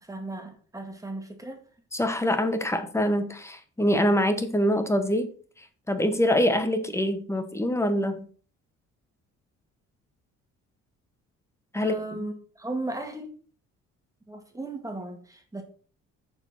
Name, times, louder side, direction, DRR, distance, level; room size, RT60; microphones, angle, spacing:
voice 1, 0.0-1.6 11.7-13.3 14.3-15.6, right 2 dB, 10° right, 4 dB, 2.1 m, -36 dB
voice 2, 1.9-5.3 5.6-8.3 11.7-12.2, equal, 10° left, 8 dB, 1.3 m, -25 dB
6.9 x 4.5 x 5.7 m, 0.42 s
cardioid pair, 90°, 30 cm